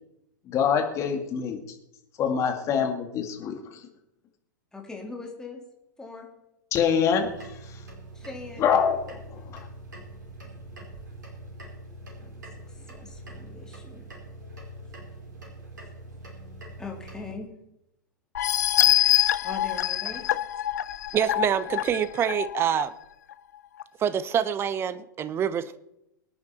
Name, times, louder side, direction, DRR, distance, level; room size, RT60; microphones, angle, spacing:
voice 1, 0.5-1.6 2.2-3.8 6.7-7.8 8.6-9.6, left 7 dB, 30° left, 5 dB, 2.3 m, -25 dB
voice 2, 4.7-5.6 6.0-6.3 8.1-8.8 12.2-14.1 16.8-17.5 19.4-20.4, left 3 dB, 5° left, 0 dB, 3.5 m, -41 dB
sound 1, 7.2-17.3, right 1 dB, 65° right, 4.6 m, -43 dB
sound 2, 18.3-22.8 23.3-23.4 23.8-23.9, left 12 dB, 60° left, 0.7 m, -25 dB
voice 3, 21.1-22.9 24.0-25.8, right 9 dB, 25° right, 16 dB, 0.9 m, -26 dB
24.0 x 9.6 x 4.4 m, 0.85 s
figure-of-eight pair, 100°, 11 cm